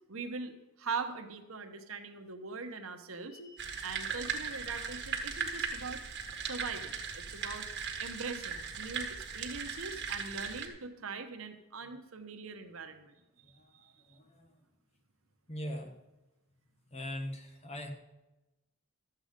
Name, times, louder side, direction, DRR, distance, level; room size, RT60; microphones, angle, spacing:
voice 1, 0.1-3.4 3.8-6.0 6.4-7.6 8.0-13.2 13.7-13.9, right 4 dB, 80° right, 7 dB, 1.1 m, -41 dB
sound 1, 3.3-4.2, left 1 dB, 65° left, 1.3 m, -54 dB
sound 2, 3.6-10.7, right 6 dB, 55° right, 1.6 m, -38 dB
voice 2, 13.4-14.6 15.5-15.9 16.9-17.9, equal, 30° left, 4 dB, 1.3 m, -41 dB
12.5 x 8.0 x 5.2 m, 1.0 s
head